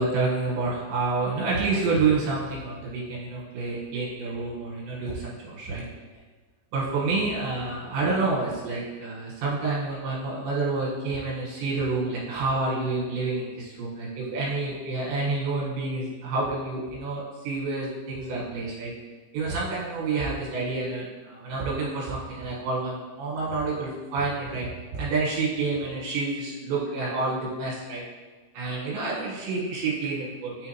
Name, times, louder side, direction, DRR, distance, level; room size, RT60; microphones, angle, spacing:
voice 1, 0.0-5.8 6.7-18.9 19.3-28.0 28.6-30.7, right 3 dB, 75° right, -6 dB, 3.3 m, -28 dB
9.6 x 3.4 x 2.9 m, 1.3 s
omnidirectional pair, 5.6 m